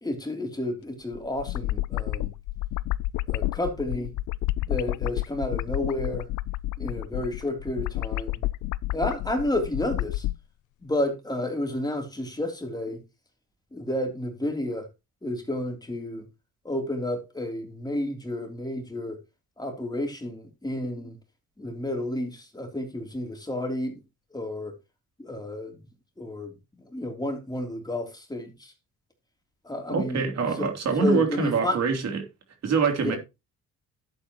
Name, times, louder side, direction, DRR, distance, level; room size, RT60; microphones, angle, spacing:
voice 1, 0.0-2.3 3.3-4.1 4.6-6.3 6.8-8.4 8.9-10.2 10.8-13.0 13.7-14.9 15.2-16.3 16.6-19.2 19.6-21.2 21.6-24.0 24.3-24.8 25.2-25.8 26.2-26.5 26.8-28.7 29.6-30.3 30.5-30.7 31.0-31.8 33.0-33.2, left 1 dB, 15° left, 3.4 m, -31 dB
sound 1, 1.1-10.4, left 17 dB, 85° left, 0.5 m, -30 dB
voice 2, 29.9-32.2 32.6-33.2, right 5 dB, 60° right, 3.3 m, -24 dB
11.5 x 8.7 x 3.1 m
cardioid pair, 90°, 30 cm